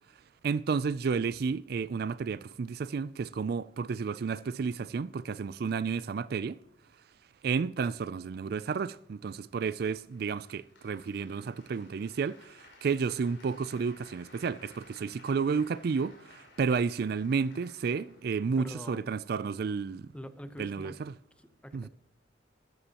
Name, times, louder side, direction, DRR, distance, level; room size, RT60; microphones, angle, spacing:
voice 1, 0.4-6.6 7.4-20.1 20.6-21.1 21.7-21.9, right 5 dB, 55° right, 0.4 m, -31 dB
Applause, 10.1-19.1, left 2 dB, 85° left, 5.5 m, -57 dB
voice 2, 18.6-19.1 20.1-21.0 21.4-21.9, equal, 5° left, 0.9 m, -44 dB
14.0 x 13.0 x 2.9 m
head